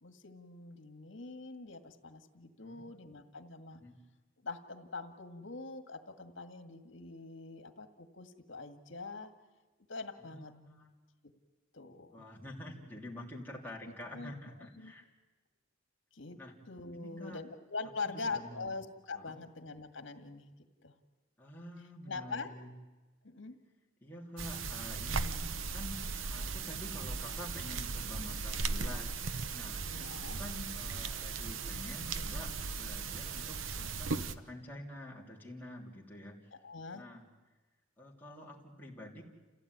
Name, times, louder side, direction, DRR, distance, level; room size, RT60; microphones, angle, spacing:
voice 1, 0.0-3.8 4.4-9.3 9.9-10.5 11.7-12.3 14.1-14.4 14.8-14.9 16.1-16.4 16.7-20.5 20.8-20.9 22.1-22.5 23.2-23.6 29.9-30.4 36.6-37.1, left 3 dB, 65° left, 7 dB, 2.0 m, -43 dB
voice 2, 10.2-10.9 12.1-15.1 16.3-16.5 16.9-17.4 18.0-18.7 19.1-19.4 21.4-22.7 24.0-29.2 29.5-29.9 30.3-36.4 36.9-37.3 38.0-39.2, left 1 dB, 10° left, -3 dB, 3.2 m, -48 dB
sound 1, 24.4-34.3, right 4 dB, 90° right, 0.9 m, -37 dB
28.5 x 16.0 x 9.6 m, 1.2 s
head